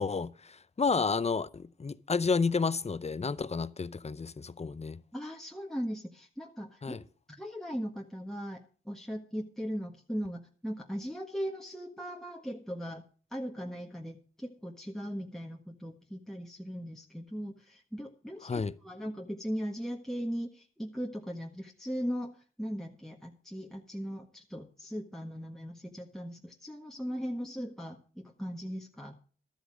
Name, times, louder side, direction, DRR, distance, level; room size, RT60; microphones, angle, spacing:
voice 1, 0.0-5.0 6.8-7.0 18.4-18.8, left 4 dB, 30° left, 0.7 m, -31 dB
voice 2, 5.1-7.0 7.3-8.6 8.8-13.0 13.3-22.3 22.6-29.2, equal, ahead, 1.5 m, -38 dB
12.5 x 8.2 x 6.2 m
cardioid pair, 55°, 21 cm